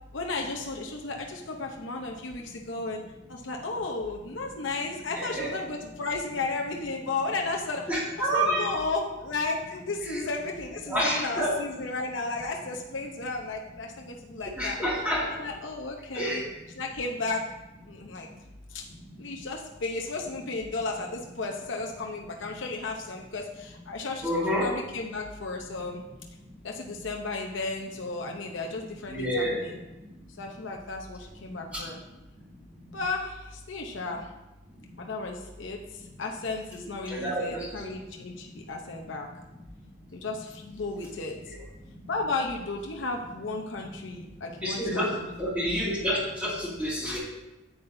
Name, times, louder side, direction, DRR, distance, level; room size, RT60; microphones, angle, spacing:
voice 1, 0.1-3.0 3.3-7.9 8.2-14.8 15.2-16.5 16.7-17.4 17.9-18.3 18.7-18.8 19.2-24.3 24.6-26.0 26.6-29.8 30.4-32.0 32.9-34.3 35.0-35.8 36.2-39.3 40.1-41.4 42.1-45.3, left 3 dB, 75° left, 1 dB, 0.8 m, -34 dB
voice 2, 5.2-5.5 7.9-8.7 10.1-10.3 10.9-11.5 14.6-15.2 16.1-16.4 24.2-24.7 29.1-29.6 37.1-37.8 44.6-45.1 45.4-47.2, equal, 5° right, -7 dB, 2.2 m, -28 dB
9.5 x 8.3 x 2.7 m, 1.0 s
head